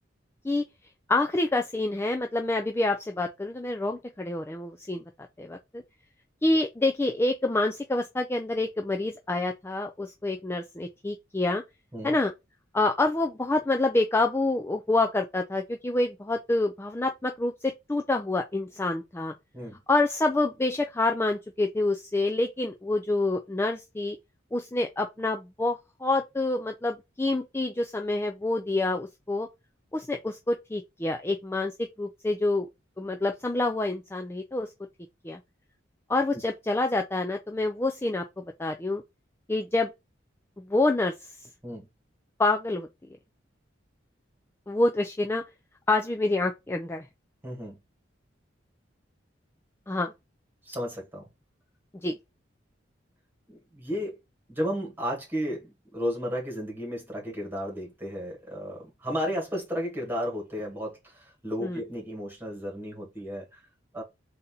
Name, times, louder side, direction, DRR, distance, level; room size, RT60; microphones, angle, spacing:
voice 1, 1.1-5.0 5.4-5.8 6.4-11.6 12.0-12.3 12.7-19.3 19.9-24.2 24.5-29.5 29.9-32.7 33.0-34.7 35.2-35.4 36.1-38.2 38.6-39.0 39.5-39.9 40.7-41.1 42.4-42.9 44.7-45.4 45.9-47.0 49.9-50.1 52.0-52.2 61.6-61.8, left 2 dB, 15° left, 0.4 m, -27 dB
voice 2, 47.4-47.8 50.6-51.3 53.5-54.2 54.5-63.6 63.9-64.0, equal, 10° right, 2.0 m, -33 dB
3.9 x 2.8 x 3.8 m
head